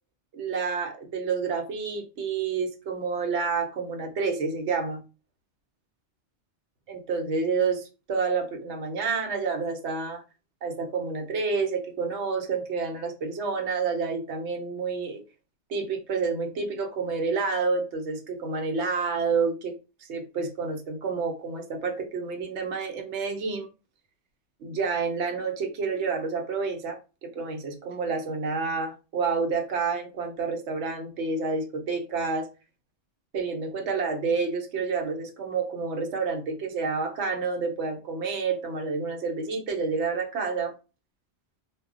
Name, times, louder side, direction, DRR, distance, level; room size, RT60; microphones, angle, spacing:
voice 1, 0.3-5.0 6.9-10.2 10.6-15.2 15.7-19.7 20.0-23.7 24.6-32.5 33.3-40.7, right 4 dB, 70° right, 0.9 m, -29 dB
2.2 x 2.1 x 3.6 m
omnidirectional pair, 1.2 m